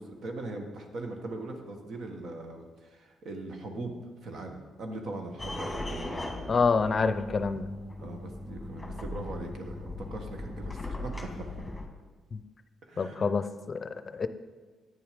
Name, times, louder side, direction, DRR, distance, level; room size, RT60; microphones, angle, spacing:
voice 1, 0.0-6.5 8.0-11.1 12.8-13.3, right 2 dB, 60° right, 4 dB, 1.4 m, -40 dB
sound 1, 5.4-11.9, left 2 dB, 10° left, 1.6 m, -38 dB
voice 2, 6.5-7.7 12.3-12.4 13.0-14.3, left 4 dB, 40° left, 12 dB, 0.6 m, -27 dB
9.3 x 7.0 x 5.2 m, 1.4 s
cardioid pair, 90°, 0 cm